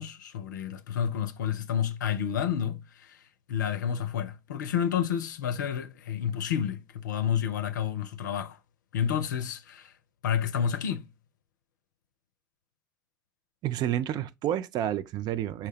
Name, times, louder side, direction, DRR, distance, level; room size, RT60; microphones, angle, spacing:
voice 1, 0.0-3.2 3.5-8.6 8.9-9.9 10.2-11.1, left 8 dB, 75° left, 0.5 m, -30 dB
voice 2, 13.6-15.7, right 11 dB, 45° right, 0.4 m, -30 dB
5.6 x 2.2 x 3.3 m
figure-of-eight pair, 70°, 10 cm